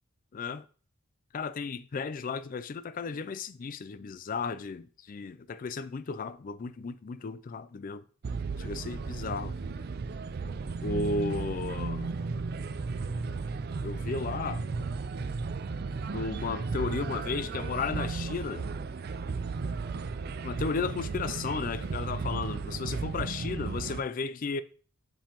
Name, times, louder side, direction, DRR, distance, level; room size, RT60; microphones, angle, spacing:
voice 1, 0.3-0.6 1.3-8.0 8.6-9.5 10.8-12.1 13.8-14.6 16.1-18.7 20.4-24.6, left 4 dB, 40° left, 0.4 m, -34 dB
sound 1, 8.2-24.0, right 4 dB, 50° right, 0.4 m, -34 dB
7.3 x 5.4 x 3.0 m
head